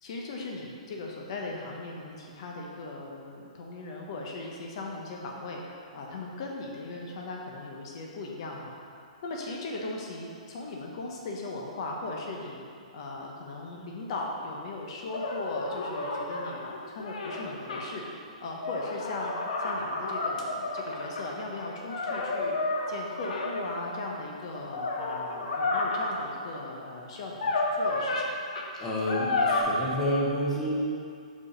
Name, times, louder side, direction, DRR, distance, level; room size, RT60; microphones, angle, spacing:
voice 1, 0.0-12.6 12.9-22.6 22.9-28.3, left 2 dB, 45° left, -1 dB, 0.9 m, -38 dB
sound 1, 15.1-17.8 18.5-21.2 21.8-23.9 24.5-26.3 27.3-28.3 28.5-28.6 29.1-29.6, left 3 dB, 75° left, 1.0 m, -31 dB
voice 2, 28.8-30.7, equal, 10° left, -6 dB, 1.0 m, -29 dB
5.3 x 4.9 x 5.5 m, 2.3 s
hypercardioid pair, 160°, 4 cm